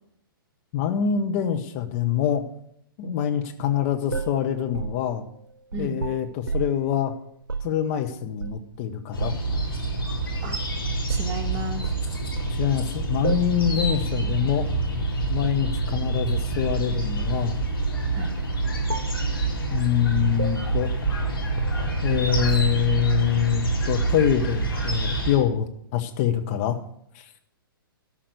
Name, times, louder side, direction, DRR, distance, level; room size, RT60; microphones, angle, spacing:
voice 1, 0.7-2.4 3.0-5.2 5.8-7.1 7.6-9.3 12.5-14.7 15.3-17.6 19.7-20.9 22.0-26.8 27.1-27.3, left 10 dB, 35° left, 6 dB, 1.0 m, -25 dB
sound 1, 4.1-6.9 7.4-7.7 8.4-8.8 9.2-9.8 10.3-10.5 11.1-11.4 11.8-12.6 13.2-13.6 13.9-14.1 14.4-14.6 15.4-16.1 16.7-17.4 17.8-18.1 18.4-18.6 18.9-19.3 19.7-20.0 20.4-22.1, right 4 dB, 75° right, 0.7 m, -32 dB
sound 2, 9.1-25.4, right 3 dB, 75° left, 4.3 m, -27 dB
voice 2, 11.1-11.9 13.7-13.9 18.1-18.3, right 1 dB, 30° right, 4 dB, 1.6 m, -33 dB
13.0 x 5.9 x 8.0 m, 0.71 s
figure-of-eight pair, 115°, 12 cm